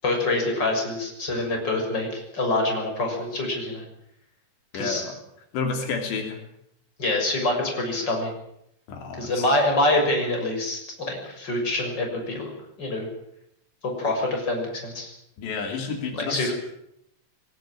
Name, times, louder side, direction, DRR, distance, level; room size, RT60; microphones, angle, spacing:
voice 1, 0.0-3.8 4.7-5.0 7.0-8.3 9.2-10.8 11.1-12.5 12.8-13.1 13.8-15.1 16.1-16.5, left 2 dB, 25° left, 2 dB, 7.0 m, -25 dB
voice 2, 4.7-5.2 5.5-6.4 8.9-9.4 15.4-16.5, left 4 dB, 80° left, 4 dB, 5.2 m, -30 dB
21.5 x 20.5 x 9.0 m, 0.77 s
omnidirectional pair, 4.9 m